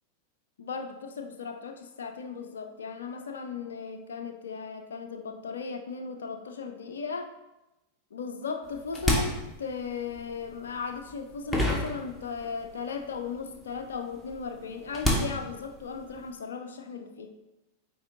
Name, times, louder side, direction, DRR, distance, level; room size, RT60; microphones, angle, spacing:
voice 1, 0.6-7.3 8.1-17.3, left 5 dB, 65° left, 7 dB, 0.5 m, -37 dB
sound 1, 8.6-12.7 13.0-16.3, equal, 5° left, 1.3 m, -31 dB
8.5 x 4.6 x 2.6 m, 0.97 s
figure-of-eight pair, 90°, 0 cm